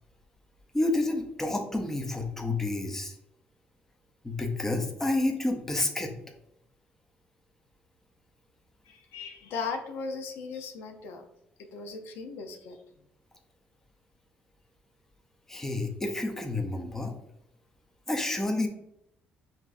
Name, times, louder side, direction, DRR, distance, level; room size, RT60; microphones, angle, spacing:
voice 1, 0.7-3.1 4.2-6.1 15.5-17.1 18.1-18.7, left 2 dB, 10° left, 4 dB, 0.6 m, -29 dB
voice 2, 8.9-11.2 11.7-12.8, left 4 dB, 85° left, 5 dB, 0.6 m, -37 dB
5.9 x 2.7 x 2.5 m, 0.79 s
cardioid pair, 125°, 4 cm